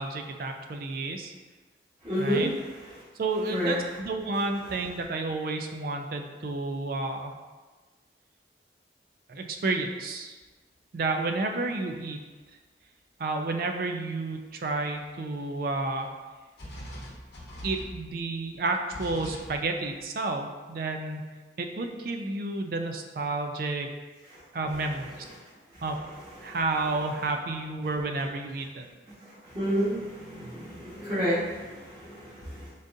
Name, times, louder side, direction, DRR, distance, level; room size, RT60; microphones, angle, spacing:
voice 1, 0.0-1.3 2.2-2.5 3.2-7.3 9.3-10.4 10.9-12.2 13.2-16.1 17.6-21.2 21.6-23.9 24.5-25.2 25.8-26.0 26.4-28.8, right 3 dB, 50° right, 4 dB, 0.4 m, -31 dB
voice 2, 2.0-2.5 2.8-2.9 3.5-3.7 24.3-24.4 25.7-25.8 26.4-26.6 29.0-32.7, equal, 25° right, -17 dB, 1.3 m, -30 dB
sound 1, 10.4-10.5 11.9-12.0 12.2-12.4 14.6-14.7 14.9-15.7 16.0-16.1 16.6-20.1, equal, 70° left, 1.0 m, -42 dB
3.9 x 3.6 x 2.6 m, 1.3 s
head